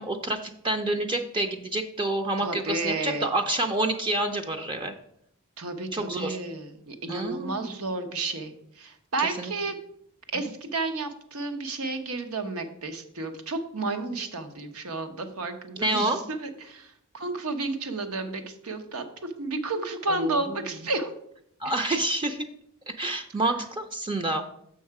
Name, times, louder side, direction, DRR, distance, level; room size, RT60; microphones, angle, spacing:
voice 1, 0.0-4.9 5.9-6.4 7.1-7.7 9.4-9.5 15.8-16.2 20.1-20.6 21.6-22.5 22.9-24.5, right 2 dB, 20° right, 5 dB, 0.4 m, -28 dB
voice 2, 2.4-3.3 5.6-9.7 10.3-21.1, right 3 dB, 80° right, 7 dB, 1.0 m, -32 dB
6.5 x 6.3 x 4.7 m, 0.73 s
head